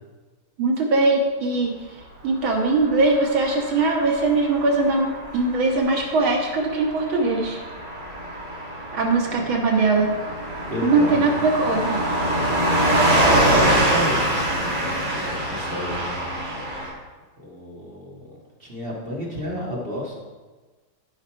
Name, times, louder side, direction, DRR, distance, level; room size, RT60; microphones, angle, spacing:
voice 1, 0.6-1.8 2.2-7.6 8.9-10.1 10.8-12.0, right 3 dB, 90° right, 0 dB, 2.4 m, -21 dB
Car passing by / Truck, 2.5-16.9, right 1 dB, 60° right, 3.2 m, -24 dB
voice 2, 10.7-11.2 13.4-16.3 17.4-20.2, left 1 dB, 30° right, -4 dB, 2.0 m, -32 dB
14.0 x 5.5 x 4.6 m, 1.3 s
omnidirectional pair, 2.2 m